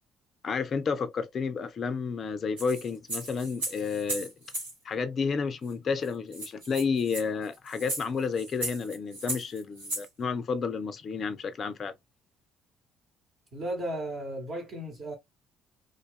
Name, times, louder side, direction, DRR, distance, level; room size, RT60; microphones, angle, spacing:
voice 1, 0.4-4.3 4.8-11.9, left 5 dB, 45° left, 0.4 m, -31 dB
sound 1, 2.6-4.7 5.7-5.8 6.0-6.1 6.3-10.1, right 1 dB, 80° right, 1.0 m, -36 dB
voice 2, 13.5-15.1, right 1 dB, 45° right, 0.9 m, -35 dB
2.5 x 2.3 x 2.2 m
figure-of-eight pair, 50°, 0 cm